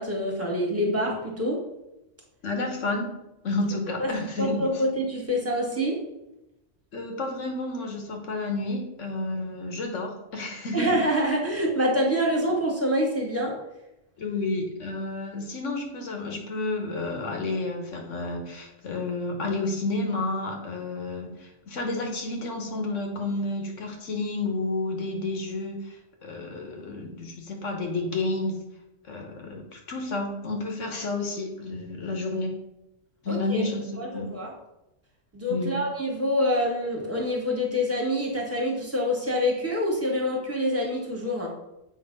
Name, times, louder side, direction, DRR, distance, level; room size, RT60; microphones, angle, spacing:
voice 1, 0.0-1.6 4.0-4.1 4.4-6.0 10.7-13.5 33.3-33.6 34.0-34.5 35.3-41.5, equal, 10° right, -2 dB, 1.5 m, -26 dB
voice 2, 2.4-3.1 3.4-4.8 6.9-10.9 14.2-28.6 29.1-32.5 33.2-34.3 35.5-35.8, left 2 dB, 80° left, 2 dB, 1.5 m, -30 dB
7.8 x 3.2 x 5.3 m, 0.92 s
omnidirectional pair, 1.2 m